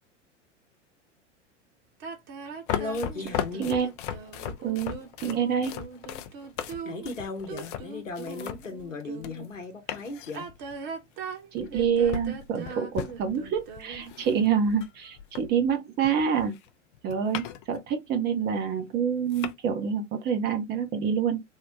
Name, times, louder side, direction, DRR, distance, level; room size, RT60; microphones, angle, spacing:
sound 1, 2.0-9.5 10.2-14.2, right 5 dB, 45° right, 1.0 m, -41 dB
voice 1, 2.7-3.7 6.8-10.5, left 3 dB, 90° left, 0.8 m, -36 dB
sound 2, 2.7-9.6 9.9-10.8 11.6-15.8 16.0-17.8 18.1-18.2 18.9-19.0 19.3-19.5, left 10 dB, 45° left, 0.5 m, -37 dB
voice 2, 4.6-5.7 11.5-16.5 17.0-21.4, right 7 dB, 25° right, 0.6 m, -27 dB
3.5 x 2.1 x 2.6 m
figure-of-eight pair, 95°, 37 cm